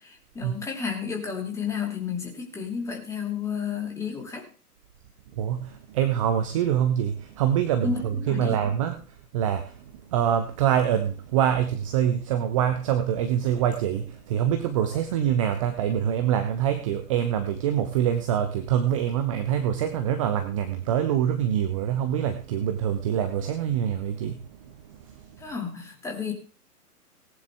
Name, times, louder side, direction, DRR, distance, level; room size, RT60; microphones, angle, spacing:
voice 1, 0.0-4.5 7.8-8.6 25.4-26.3, left 6 dB, 5° left, 1 dB, 2.6 m, -32 dB
voice 2, 5.4-9.0 9.3-9.8 10.1-24.8 25.1-25.2, right 9 dB, 20° right, 8 dB, 0.9 m, -25 dB
18.5 x 10.5 x 3.5 m, 0.36 s
figure-of-eight pair, 125°, 47 cm